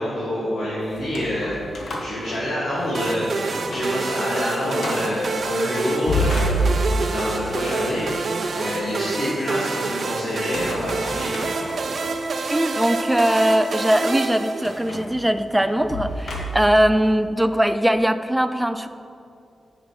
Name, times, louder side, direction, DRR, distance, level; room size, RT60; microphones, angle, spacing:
voice 1, 0.0-1.6 2.0-6.6 7.0-8.3 8.6-11.3, left 1 dB, 80° left, -10 dB, 2.2 m, -26 dB
sound 1, 0.9-3.0 3.4-4.0 4.3-4.4 4.8-5.2 5.8-7.2 10.3-12.1 12.7-12.9 14.6-16.9, equal, 55° left, 1.3 m, -28 dB
sound 2, 2.9-15.1, right 4 dB, 45° right, 0.6 m, -27 dB
voice 2, 12.5-18.9, equal, 5° right, 10 dB, 0.3 m, -20 dB
9.4 x 5.8 x 5.9 m, 2.5 s
wide cardioid pair, 175°, 0 cm